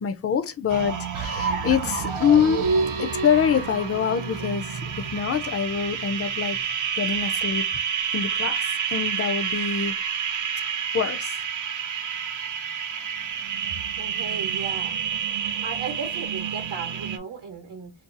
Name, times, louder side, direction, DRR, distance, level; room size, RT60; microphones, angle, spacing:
voice 1, 0.0-2.7 3.0-7.6 8.1-10.0 10.9-11.4, left 7 dB, 35° left, 0.4 m, -25 dB
sound 1, 0.7-17.2, right 7 dB, 45° right, 0.4 m, -29 dB
sound 2, 1.1-5.1, right 4 dB, 85° right, 0.6 m, -29 dB
voice 2, 14.0-14.9 15.6-17.9, right 5 dB, 60° right, 0.9 m, -35 dB
2.7 x 2.3 x 3.6 m
wide cardioid pair, 140°, 48 cm